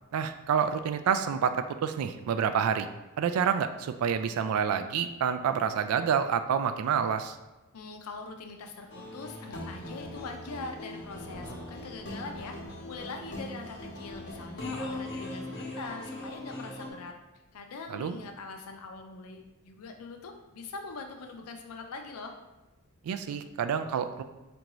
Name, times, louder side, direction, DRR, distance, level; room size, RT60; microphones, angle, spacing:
voice 1, 0.1-2.9 3.2-7.4 17.9-18.1 23.0-24.2, right 7 dB, 80° right, 8 dB, 0.3 m, -28 dB
voice 2, 7.7-12.6 12.8-17.1 17.5-22.3, left 3 dB, 90° left, 4 dB, 0.5 m, -42 dB
sound 1, 8.8-9.3 9.5-10.0 10.4-14.5, equal, 5° right, 0.6 m, -49 dB
sound 2, 8.9-16.9, left 1 dB, 60° left, 0.9 m, -40 dB
4.5 x 2.6 x 3.0 m, 1.1 s
head